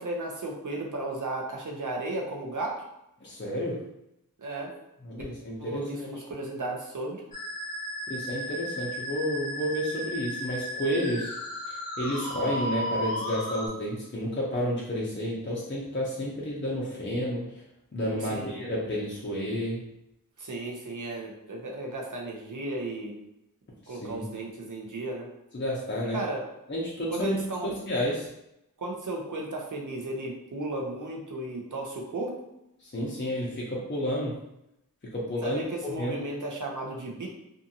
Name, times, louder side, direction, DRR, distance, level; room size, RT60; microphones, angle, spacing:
voice 1, 0.0-2.8 4.4-4.7 5.6-7.2 18.2-18.7 20.4-23.2 23.9-25.3 26.1-26.4 27.1-27.8 28.8-32.3 35.4-37.3, right 2 dB, 60° right, -1 dB, 0.7 m, -34 dB
voice 2, 3.2-3.8 5.0-6.1 8.1-11.3 11.7-17.6 17.9-19.8 23.8-24.3 25.5-26.2 26.7-27.4 27.6-28.3 32.8-34.3 35.0-36.2, equal, 35° left, -5 dB, 0.6 m, -31 dB
Musical instrument, 7.3-13.7, equal, 75° left, 0.7 m, -34 dB
2.6 x 2.4 x 2.7 m, 0.85 s
wide cardioid pair, 45°, 35 cm